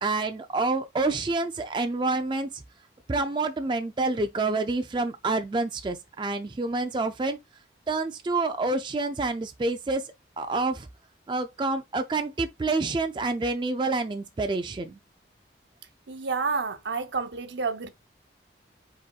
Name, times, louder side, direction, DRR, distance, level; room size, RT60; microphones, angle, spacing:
voice 1, 0.0-2.6 3.1-7.4 7.9-10.9 11.3-15.0, right 3 dB, 25° right, 0.3 m, -28 dB
voice 2, 16.1-17.9, right 4 dB, 75° right, 0.6 m, -29 dB
5.1 x 4.1 x 2.3 m
head